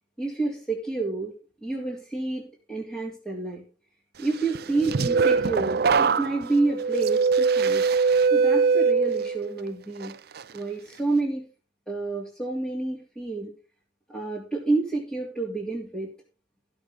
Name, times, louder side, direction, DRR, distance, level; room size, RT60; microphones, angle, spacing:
voice 1, 0.2-1.3 1.6-3.6 4.2-7.9 8.3-10.1 10.5-11.5 11.9-13.5 14.1-16.1, right 3 dB, 5° left, -5 dB, 3.0 m, -29 dB
sound 1, 4.5-9.6 10.0-10.4, right 5 dB, 50° right, 0.5 m, -22 dB
15.0 x 6.5 x 5.4 m, 0.33 s
head